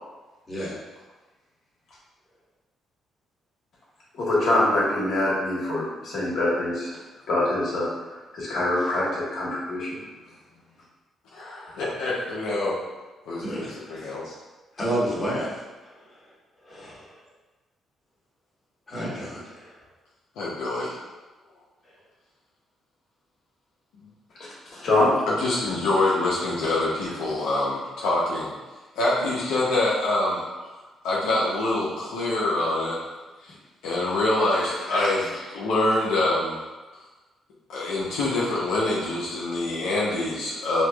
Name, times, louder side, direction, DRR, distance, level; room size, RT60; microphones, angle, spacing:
voice 1, 4.1-6.9 7.3-7.9 8.3-9.9 24.4-25.1 34.9-35.1, left 2 dB, 65° left, -6 dB, 1.2 m, -24 dB
voice 2, 11.3-12.8 13.3-14.3 20.4-21.0 25.3-28.5 29.0-30.4 31.0-33.0 33.4-33.5 33.8-36.6 36.9-37.0 37.7-40.8, left 2 dB, 90° left, -6 dB, 0.7 m, -25 dB
voice 3, 13.4-14.1 14.8-15.5 16.6-17.0 18.9-19.7, right 1 dB, 25° left, -7 dB, 1.3 m, -30 dB
4.3 x 2.8 x 2.3 m, 1.2 s
cardioid pair, 90°, 0 cm